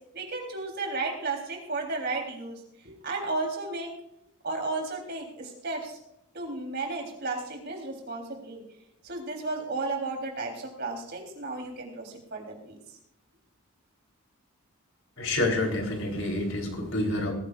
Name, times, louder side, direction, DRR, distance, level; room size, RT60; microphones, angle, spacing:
voice 1, 0.1-2.6 2.8-3.9 4.4-6.0 6.3-8.6 9.0-12.8, right 3 dB, 50° right, 1 dB, 3.8 m, -33 dB
voice 2, 15.2-17.3, left 2 dB, 65° left, 2 dB, 3.9 m, -28 dB
21.0 x 14.5 x 2.5 m, 0.79 s
head